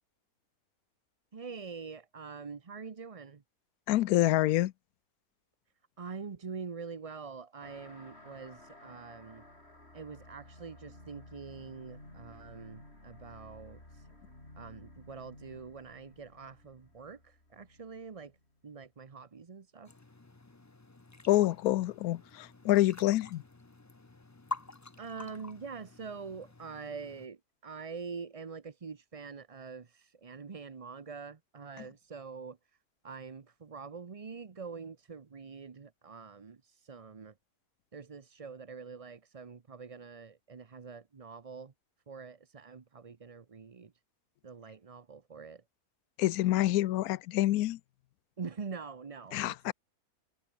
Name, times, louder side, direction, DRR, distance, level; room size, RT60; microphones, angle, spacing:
voice 1, 1.3-3.4 6.0-9.4 9.9-14.1 14.6-18.3 18.6-19.9 25.0-32.6 33.0-37.3 37.9-41.7 42.1-43.9 44.4-45.6 48.4-49.7, right 5 dB, 30° right, 0.7 m, -45 dB
voice 2, 3.9-4.7 21.3-23.4 46.2-47.8 49.3-49.7, left 15 dB, 80° left, 1.1 m, -27 dB
sound 1, 7.6-18.6, left 1 dB, 45° left, 7.4 m, -54 dB
sound 2, 19.9-27.3, left 2 dB, 15° left, 0.6 m, -47 dB
omnidirectional pair, 1.5 m